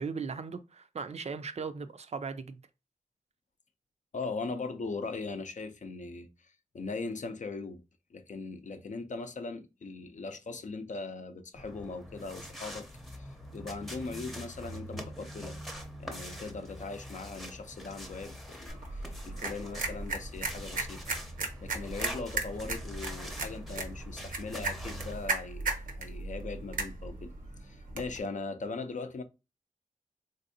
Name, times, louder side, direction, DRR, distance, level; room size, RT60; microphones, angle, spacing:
voice 1, 0.0-2.6, right 5 dB, 55° right, 0.4 m, -38 dB
voice 2, 4.1-7.8 8.1-15.6 16.0-21.0 21.6-27.3 27.6-29.2, left 3 dB, 65° left, 0.5 m, -40 dB
sound 1, 11.5-25.2, equal, ahead, 0.6 m, -44 dB
sound 2, 18.7-28.2, right 3 dB, 85° right, 0.7 m, -37 dB
3.4 x 2.6 x 2.6 m
wide cardioid pair, 90°, 14 cm